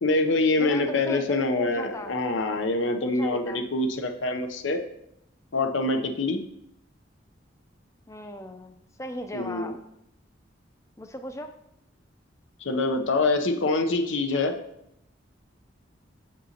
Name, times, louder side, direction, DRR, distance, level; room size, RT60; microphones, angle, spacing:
voice 1, 0.0-4.8 5.5-6.4 9.3-9.7 12.6-14.6, left 2 dB, 80° left, 6 dB, 0.7 m, -25 dB
voice 2, 0.6-2.1 3.0-3.6 8.1-9.7 11.0-11.5, equal, 15° left, 7 dB, 0.5 m, -37 dB
7.5 x 6.3 x 2.8 m, 0.79 s
head